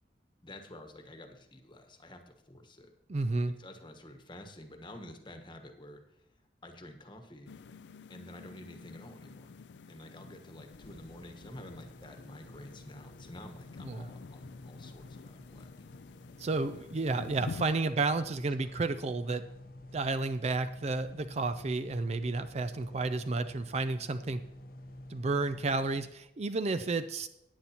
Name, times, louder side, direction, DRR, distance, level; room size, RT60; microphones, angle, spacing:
voice 1, 0.4-2.9 3.5-7.5 8.1-9.6 9.9-15.7 16.8-17.1 17.9-18.3 18.6-18.8, left 1 dB, 25° left, 6 dB, 1.2 m, -50 dB
voice 2, 3.1-3.6 13.8-14.0 16.4-19.5 19.9-24.4 25.1-27.3, right 3 dB, 35° right, 10 dB, 0.4 m, -31 dB
sound 1, 7.5-17.6, left 4 dB, 75° left, 0.4 m, -48 dB
sound 2, 10.7-26.1, left 1 dB, 55° left, 0.8 m, -51 dB
16.0 x 9.5 x 2.9 m, 0.83 s
head